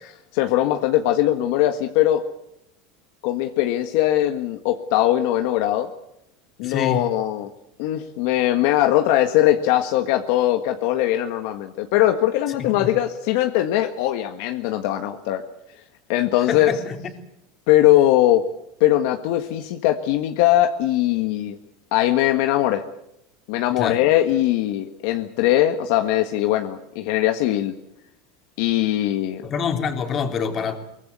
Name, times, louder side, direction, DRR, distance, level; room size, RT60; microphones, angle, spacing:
voice 1, 0.0-2.2 3.2-5.9 6.6-7.5 7.8-15.4 16.1-16.7 17.7-18.4 18.8-21.6 21.9-22.8 23.5-27.7 28.6-29.4, left 13 dB, 65° left, 6 dB, 1.6 m, -20 dB
voice 2, 6.6-7.0 12.6-12.9 16.5-17.0 23.8-24.0 29.4-30.8, left 6 dB, 30° left, 4 dB, 3.6 m, -26 dB
23.5 x 20.0 x 8.2 m, 0.79 s
supercardioid pair, 140°, 0 cm